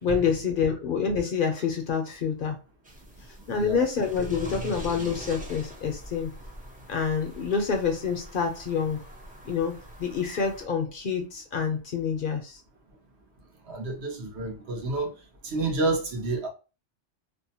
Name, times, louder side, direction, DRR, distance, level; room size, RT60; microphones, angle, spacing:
voice 1, 0.0-2.6 3.5-6.3 6.9-9.0 9.4-12.6, left 6 dB, 60° left, 0.6 m, -27 dB
sound 1, 2.8-10.6, right 1 dB, 10° right, 0.4 m, -43 dB
voice 2, 3.5-3.8 13.7-15.1 15.4-16.5, right 2 dB, 70° right, 1.0 m, -29 dB
2.7 x 2.1 x 2.7 m
omnidirectional pair, 1.2 m